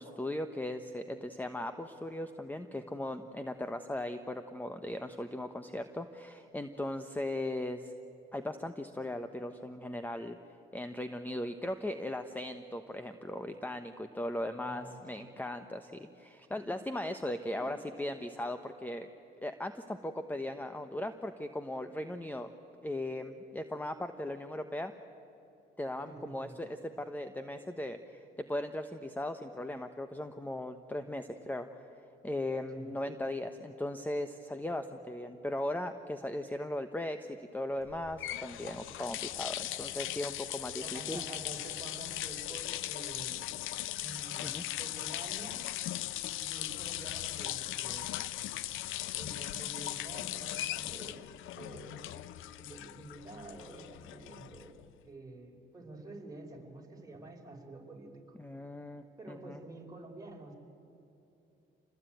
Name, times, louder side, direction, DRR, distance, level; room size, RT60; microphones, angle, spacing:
voice 1, 0.0-7.9 8.3-10.4 10.7-19.1 19.4-22.5 22.8-24.9 25.8-31.8 32.2-41.2 44.4-44.6 58.4-59.6, left 1 dB, 10° left, 9 dB, 1.1 m, -38 dB
voice 2, 14.6-15.3 17.5-17.7 26.0-26.6 32.7-32.9 40.8-43.4 44.0-45.6 46.4-48.1 49.1-54.8 55.0-58.4 59.2-60.6, right 2 dB, 20° right, 0 dB, 5.2 m, -48 dB
sound 1, 37.9-54.9, left 14 dB, 90° left, 0.7 m, -39 dB
27.5 x 19.5 x 9.3 m, 2.9 s
cardioid pair, 90°, 20 cm